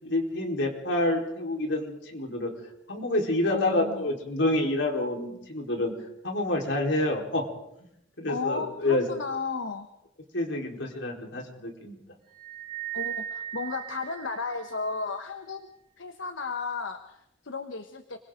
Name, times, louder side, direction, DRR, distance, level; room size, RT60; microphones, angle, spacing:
voice 1, 0.0-2.5 2.9-5.9 6.2-7.4 8.2-9.0 10.3-12.0, left 1 dB, 70° left, 0 dB, 4.4 m, -28 dB
voice 2, 3.5-4.1 8.3-9.9 12.9-15.7 16.0-18.2, left 4 dB, 85° left, 7 dB, 1.2 m, -34 dB
sound 1, 12.3-15.0, right 11 dB, 55° right, 3.2 m, -37 dB
29.0 x 22.5 x 3.9 m, 0.79 s
head